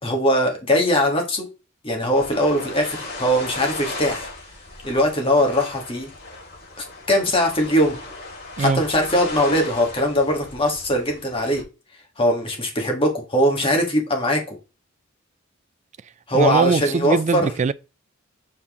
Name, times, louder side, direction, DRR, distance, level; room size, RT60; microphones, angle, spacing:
voice 1, 0.0-1.5 1.8-4.3 4.8-6.1 7.1-8.0 8.6-11.6 12.2-14.6 16.3-17.5, equal, 25° left, 1.9 m, -21 dB
sound 1, 2.1-11.6, left 2 dB, 55° left, 4.3 m, -36 dB
voice 2, 16.3-17.7, right 4 dB, 35° right, 0.4 m, -21 dB
7.5 x 4.2 x 3.7 m
head